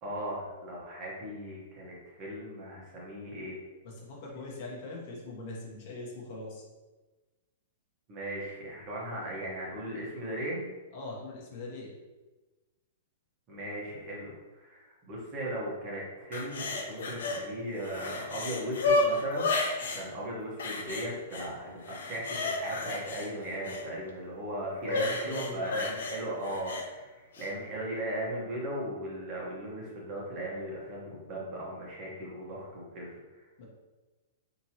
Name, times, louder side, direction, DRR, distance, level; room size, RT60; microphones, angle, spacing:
voice 1, 0.0-3.6 8.1-10.7 13.5-19.5 19.8-33.1 33.3-33.5, right 1 dB, 25° right, -5 dB, 1.1 m, -37 dB
voice 2, 3.8-6.6 10.9-11.9 24.8-25.8 33.6-33.7, left 2 dB, 40° left, -3 dB, 1.1 m, -42 dB
sound 1, 16.3-17.4 17.8-20.0 20.6-21.5 21.8-23.8 24.8-26.8 27.3-27.5, left 3 dB, 80° left, 0.7 m, -32 dB
4.3 x 2.9 x 2.9 m, 1.2 s
hypercardioid pair, 160°, 0 cm